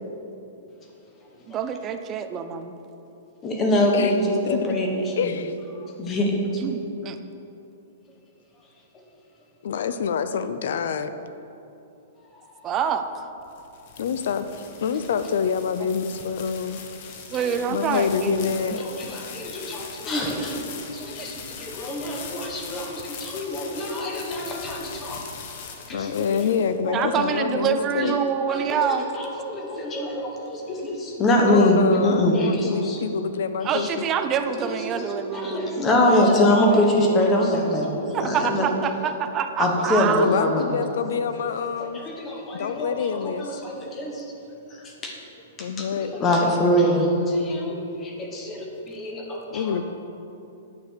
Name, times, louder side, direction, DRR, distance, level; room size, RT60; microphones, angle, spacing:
voice 1, 1.5-2.7 6.6-7.2 12.6-13.1 17.3-18.8 26.9-29.0 33.6-35.8 38.1-40.3, right 7 dB, 20° right, 9 dB, 0.5 m, -26 dB
voice 2, 3.4-5.4 5.8-6.4 17.3-17.5 17.9-18.4 18.8-20.6 20.9-25.2 25.9-26.5 26.8-27.4 28.0-28.1 28.5-33.0 33.6-34.0 34.5-38.7 39.6-40.8 41.4-44.3 44.7-45.1 45.6-49.8, left 1 dB, 20° left, 1 dB, 1.2 m, -24 dB
voice 3, 4.5-4.8 5.2-5.5 9.6-11.1 14.0-14.5 14.8-16.8 17.7-18.9 25.9-28.2 31.5-34.0 40.2-42.0 42.5-43.6 45.6-46.1 49.5-49.8, left 6 dB, 65° left, 11 dB, 0.6 m, -26 dB
sound 1, 13.2-27.0, left 6 dB, 40° left, 1.1 m, -40 dB
9.6 x 6.9 x 6.5 m, 2.9 s
hypercardioid pair, 165°, 0 cm